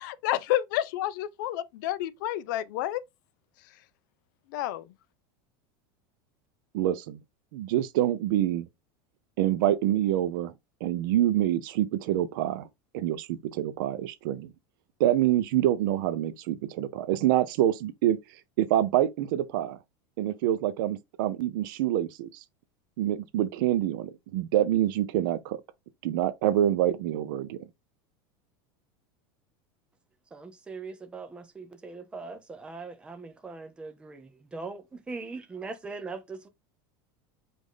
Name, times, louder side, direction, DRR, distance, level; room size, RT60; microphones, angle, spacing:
voice 1, 0.0-3.0 4.5-4.8, left 13 dB, 55° left, 0.4 m, -30 dB
voice 2, 6.7-7.2 7.5-8.7 9.4-10.5 10.8-12.7 12.9-14.5 15.0-18.2 18.6-19.8 20.2-22.3 23.0-25.6 26.0-27.6, right 12 dB, 60° right, 0.6 m, -26 dB
voice 3, 30.3-36.5, right 4 dB, 10° right, 0.5 m, -41 dB
5.1 x 2.6 x 3.7 m
supercardioid pair, 180°, 13 cm